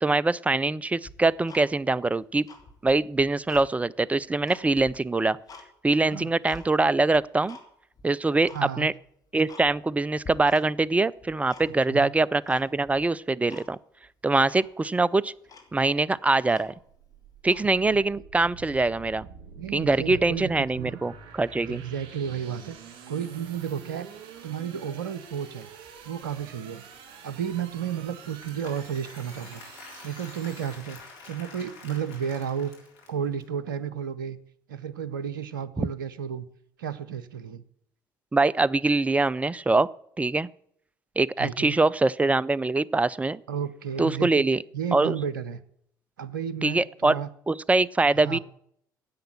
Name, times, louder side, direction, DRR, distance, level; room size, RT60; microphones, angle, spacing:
voice 1, 0.0-2.5 2.8-5.4 5.8-7.6 8.0-8.9 9.3-13.8 14.2-15.3 15.7-16.7 17.4-19.3 19.7-21.8 35.8-35.9 38.3-39.9 40.2-40.5 41.2-43.4 44.0-44.6 44.9-45.2 46.6-47.2 47.5-48.4, right 3 dB, 15° right, 22 dB, 0.4 m, -23 dB
Tick-tock, 1.0-2.1 2.4-3.7 4.1-5.7 6.1-6.7 7.1-7.7 7.9-8.0 8.4-8.7 9.1-9.2 9.5-10.0 10.2-10.9 11.2-12.0 12.5-13.0 13.5-13.7 14.0-14.1 14.5-14.7 15.2-15.3 15.5-17.0 17.4-17.7, left 3 dB, 35° left, 2.6 m, -47 dB
voice 2, 8.5-8.9 11.9-12.1 19.6-21.0 21.7-22.8 23.1-24.1 24.4-25.7 26.1-26.8 27.2-29.6 30.0-31.0 31.3-32.7 33.1-34.4 34.7-36.5 36.8-37.6 41.4-41.8 43.5-44.4 44.7-45.6 46.2-47.3 48.2-48.4, right 8 dB, 75° right, 16 dB, 0.6 m, -32 dB
sound 1, 16.6-30.8, right 6 dB, 55° right, 3.4 m, -47 dB
Applause / Crowd, 28.1-33.4, left 4 dB, 65° left, 3.7 m, -48 dB
10.5 x 7.9 x 8.8 m, 0.69 s
figure-of-eight pair, 55°, 11 cm